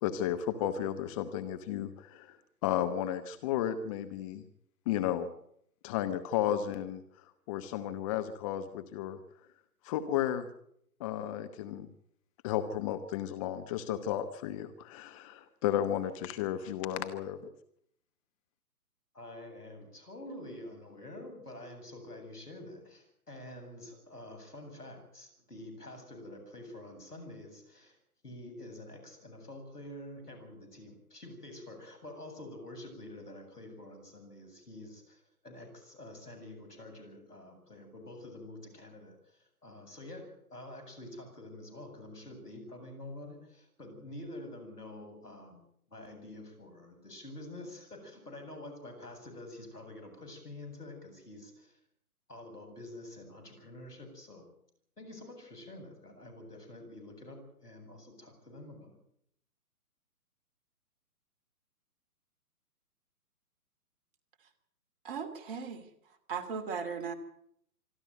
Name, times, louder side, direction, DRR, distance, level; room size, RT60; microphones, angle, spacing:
voice 1, 0.0-2.4 2.6-4.4 4.9-5.3 5.8-7.0 7.5-9.2 9.8-10.5 11.0-11.9 12.4-17.4, left 11 dB, 20° left, 9 dB, 1.0 m, -33 dB
voice 2, 19.1-28.0 28.2-51.8 52.3-54.5 55.0-59.0, left 1 dB, 85° left, 6 dB, 8.0 m, -47 dB
voice 3, 65.0-65.8 66.3-67.1, right 6 dB, 35° right, 8 dB, 2.6 m, -37 dB
25.5 x 12.5 x 9.3 m, 0.71 s
figure-of-eight pair, 130°, 46 cm